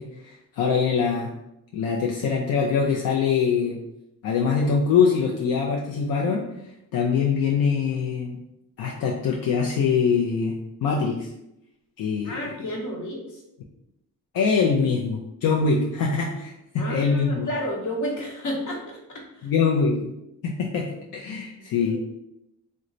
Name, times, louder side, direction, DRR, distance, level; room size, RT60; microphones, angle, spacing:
voice 1, 0.0-1.3 1.7-3.8 4.2-6.4 6.9-8.4 8.8-10.6 10.8-11.3 12.0-12.5 14.3-17.5 19.4-20.1 20.4-22.0, left 5 dB, 85° left, -2 dB, 0.5 m, -23 dB
voice 2, 12.2-13.4 16.8-19.5 21.7-22.0, equal, 60° left, -2 dB, 1.0 m, -31 dB
3.1 x 2.2 x 3.8 m, 0.84 s
cardioid pair, 110°, 34 cm